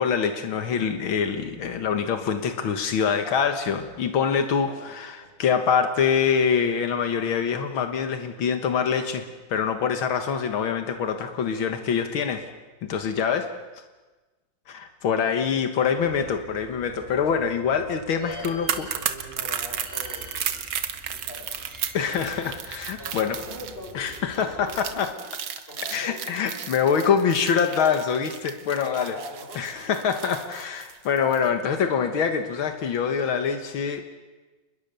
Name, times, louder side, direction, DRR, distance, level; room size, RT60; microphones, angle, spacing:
voice 1, 0.0-5.1 5.4-9.2 9.5-12.4 12.9-13.5 14.7-18.9 21.9-23.4 23.9-25.1 25.9-29.2 29.6-34.0, left 6 dB, 85° left, 7 dB, 2.2 m, -25 dB
voice 2, 4.5-5.5 15.8-16.7 18.1-20.6 21.1-21.8 23.0-25.3 25.7-26.6 28.9-29.9, left 1 dB, 30° left, 0 dB, 6.5 m, -43 dB
Bird, 16.0-24.9, equal, 10° right, 7.9 m, -47 dB
sound 1, 18.3-31.5 31.8-31.9, right 8 dB, 80° right, 2.1 m, -34 dB
29.0 x 21.0 x 6.9 m, 1.2 s
omnidirectional pair, 2.2 m